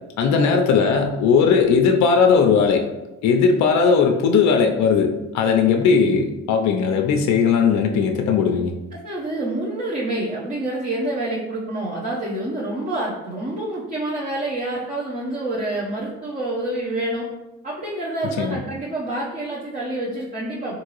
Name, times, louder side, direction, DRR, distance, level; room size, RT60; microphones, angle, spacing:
voice 1, 0.2-2.9 3.2-8.7 18.4-18.6, left 5 dB, 70° left, 3 dB, 0.5 m, -18 dB
voice 2, 8.9-17.3 17.6-20.8, right 1 dB, 25° right, -6 dB, 0.8 m, -27 dB
3.7 x 2.6 x 2.9 m, 0.98 s
cardioid pair, 90°, 30 cm